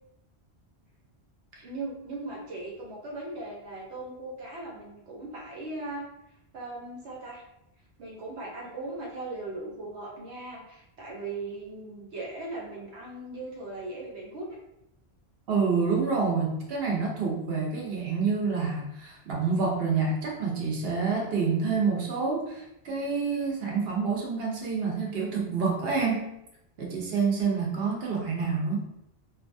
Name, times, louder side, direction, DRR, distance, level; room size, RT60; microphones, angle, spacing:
voice 1, 1.6-6.0 6.5-7.4 8.0-14.5, right 2 dB, 90° right, -3 dB, 1.2 m, -38 dB
voice 2, 15.5-26.3 26.8-28.8, right 5 dB, 65° right, -1 dB, 0.9 m, -28 dB
2.8 x 2.3 x 2.6 m, 0.82 s
omnidirectional pair, 1.1 m